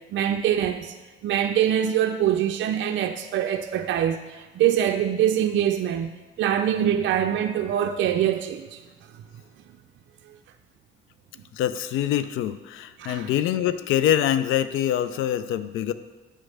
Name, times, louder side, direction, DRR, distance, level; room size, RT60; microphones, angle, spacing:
voice 1, 0.1-1.0 1.2-6.1 6.4-8.8 10.3-10.4 13.0-13.3, right 10 dB, 70° right, 0.4 m, -24 dB
voice 2, 11.5-15.9, left 11 dB, 85° left, 0.4 m, -24 dB
8.8 x 3.3 x 6.2 m
cardioid pair, 90°, 20 cm